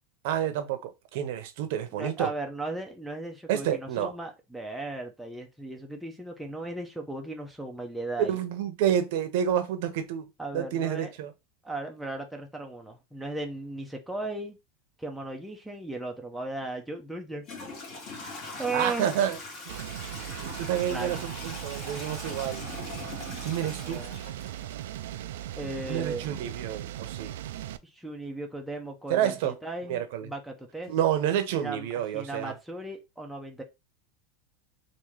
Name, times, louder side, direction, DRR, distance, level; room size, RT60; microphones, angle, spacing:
voice 1, 0.2-2.3 3.5-4.1 8.2-10.3 10.5-11.3 18.7-19.4 19.7-19.8 20.4-22.7 23.4-24.0 25.9-27.3 29.1-29.5 29.9-30.3 30.9-32.5, right 10 dB, 60° right, 0.7 m, -29 dB
voice 2, 1.9-8.4 10.4-11.1 11.6-14.6 15.0-17.4 18.6-19.1 20.9-21.3 23.8-24.2 25.6-26.3 27.8-30.9 31.5-31.9 32.1-33.6, right 2 dB, ahead, 0.6 m, -36 dB
Toilet flush / Trickle dribble, 16.6-16.7 17.4-25.2, left 3 dB, 40° left, 1.9 m, -41 dB
sound 1, 19.7-27.8, right 12 dB, 80° right, 0.3 m, -38 dB
3.6 x 2.6 x 3.1 m
supercardioid pair, 150°, 0 cm